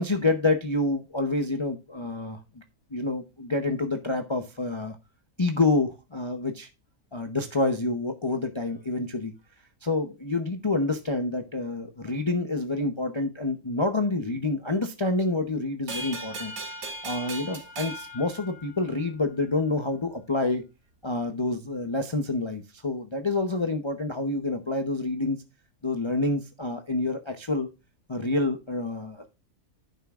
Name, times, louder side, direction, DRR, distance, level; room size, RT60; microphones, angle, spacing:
voice 1, 0.0-2.6 2.9-5.0 5.4-6.7 7.1-9.3 9.8-16.5 17.0-20.6 21.0-25.4 25.8-27.7 28.1-29.3, left 2 dB, 25° left, 0.8 m, -28 dB
sound 1, 15.9-19.1, right 1 dB, 90° right, 2.3 m, -38 dB
11.0 x 9.4 x 2.4 m
omnidirectional pair, 1.5 m